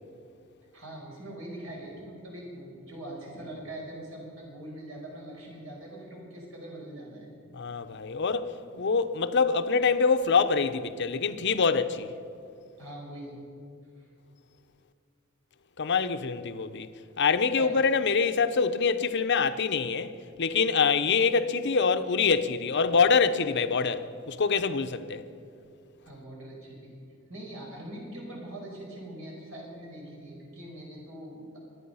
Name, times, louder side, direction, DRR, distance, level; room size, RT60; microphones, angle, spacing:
voice 1, 0.7-7.3 12.8-13.4 14.0-14.1 17.5-17.7 26.0-26.9 27.3-31.6, right 1 dB, 80° right, 5.2 m, -42 dB
voice 2, 7.5-12.1 15.8-16.9 17.2-25.3, left 5 dB, 60° left, 0.7 m, -25 dB
24.0 x 9.8 x 5.6 m
head